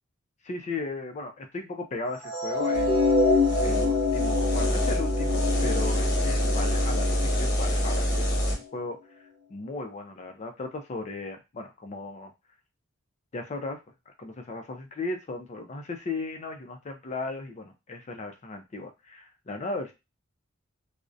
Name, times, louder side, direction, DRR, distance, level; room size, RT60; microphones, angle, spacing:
voice 1, 0.4-8.2 8.5-9.0 9.5-12.3 13.3-13.8 14.1-19.9, left 3 dB, 35° left, 5 dB, 0.4 m, -36 dB
sound 1, 2.2-8.5, left 3 dB, 25° right, 0.7 m, -27 dB
sound 2, 2.7-8.5, equal, 50° left, 0.8 m, -26 dB
2.4 x 2.0 x 2.5 m, 0.25 s
head